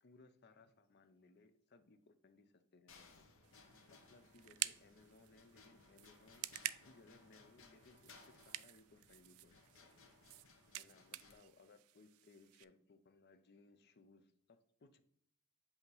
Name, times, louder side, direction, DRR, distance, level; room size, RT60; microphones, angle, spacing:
voice 1, 0.0-3.2 3.9-6.5 6.8-9.9 10.8-15.0, left 3 dB, 50° left, 10 dB, 0.6 m, -65 dB
sound 1, 2.9-11.3, left 4 dB, 65° left, 1.1 m, -64 dB
sound 2, 3.4-12.6, right 15 dB, 85° right, 0.3 m, -49 dB
8.0 x 2.9 x 5.4 m, 0.71 s
head